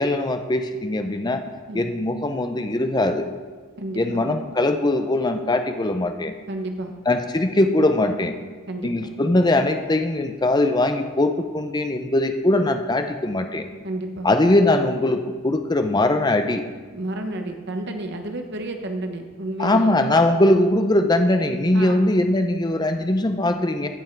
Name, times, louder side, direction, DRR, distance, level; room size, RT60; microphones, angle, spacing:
voice 1, 0.0-1.4 1.7-3.3 4.0-6.3 7.1-8.3 8.8-13.7 14.2-16.6 19.6-23.9, left 1 dB, 20° left, 7 dB, 0.5 m, -21 dB
voice 2, 3.8-4.3 6.5-6.9 8.7-9.1 13.8-14.3 16.9-19.9 21.7-22.1, right 1 dB, 55° right, 5 dB, 1.0 m, -31 dB
15.5 x 5.5 x 4.5 m, 1.5 s
head